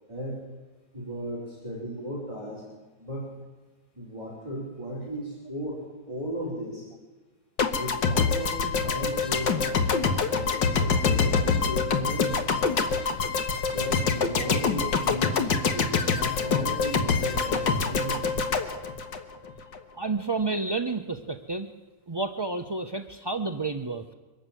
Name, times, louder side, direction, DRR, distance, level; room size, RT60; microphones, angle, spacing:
voice 1, 0.1-0.4 0.9-2.6 3.0-3.3 3.9-6.9 7.8-9.9 10.3-12.5 13.7-18.4, equal, 15° right, -5 dB, 5.1 m, -36 dB
sound 1, 7.6-19.8, left 5 dB, 80° left, 2.1 m, -25 dB
voice 2, 20.0-21.7 22.1-24.1, right 3 dB, 30° right, 6 dB, 0.4 m, -30 dB
24.0 x 13.0 x 9.2 m, 1.3 s
omnidirectional pair, 1.9 m